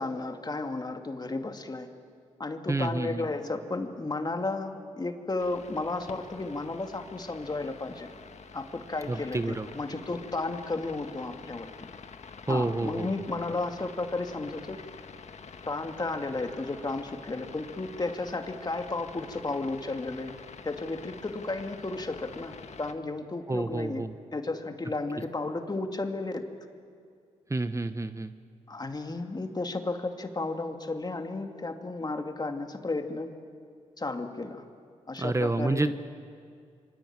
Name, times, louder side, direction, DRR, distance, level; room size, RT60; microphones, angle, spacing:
voice 1, 0.0-1.9 2.4-8.1 8.5-11.9 12.5-14.8 15.7-20.4 20.6-24.0 24.3-26.5 28.7-33.4 34.0-34.6 35.1-35.9, left 2 dB, 35° left, 5 dB, 2.6 m, -33 dB
voice 2, 2.7-3.3 9.1-9.7 12.5-13.1 23.5-24.2 27.5-28.3 35.2-35.9, right 2 dB, 25° right, 10 dB, 1.1 m, -29 dB
sound 1, 5.4-22.9, left 5 dB, 65° left, 1.7 m, -47 dB
27.0 x 23.5 x 9.0 m, 2.3 s
cardioid pair, 60°, 13 cm